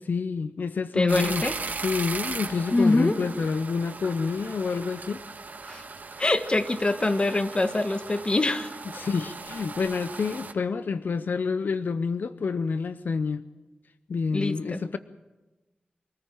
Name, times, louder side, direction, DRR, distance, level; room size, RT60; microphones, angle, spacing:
voice 1, 0.0-1.5 1.8-5.2 8.9-13.4 14.1-15.0, left 5 dB, 80° left, 12 dB, 0.6 m, -28 dB
voice 2, 0.9-1.5 2.7-3.2 5.7-5.8 6.2-8.7 14.3-14.8, left 2 dB, 35° left, 10 dB, 1.4 m, -24 dB
sound 1, 1.1-10.5, right 4 dB, 65° right, 1.6 m, -38 dB
24.5 x 14.0 x 8.9 m, 1.1 s
wide cardioid pair, 70°, 3 cm